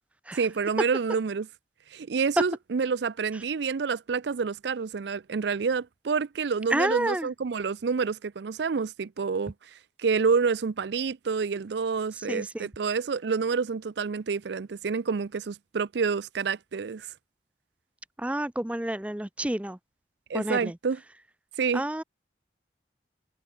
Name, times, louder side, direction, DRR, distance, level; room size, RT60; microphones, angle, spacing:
voice 1, 0.3-1.5 1.9-9.5 10.0-17.1 20.3-21.0 21.6-21.8, right 5 dB, 75° right, 0.5 m, -28 dB
voice 2, 6.7-7.3 12.2-12.7 18.2-19.8 20.3-20.8 21.7-22.0, right 1 dB, 5° right, 0.5 m, -29 dB
head